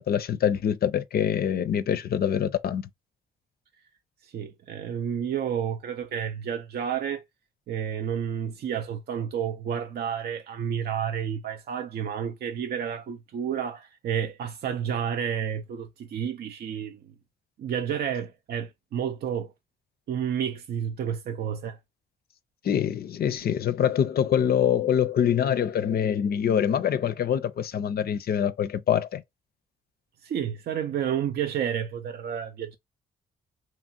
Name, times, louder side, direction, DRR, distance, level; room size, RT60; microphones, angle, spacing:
voice 1, 0.0-2.9 22.6-29.2, left 9 dB, 50° left, 0.4 m, -25 dB
voice 2, 4.2-7.2 7.7-17.1 17.6-19.5 20.1-21.8 30.2-32.8, right 8 dB, 55° right, 0.4 m, -30 dB
2.8 x 2.5 x 2.6 m
supercardioid pair, 50°, 20 cm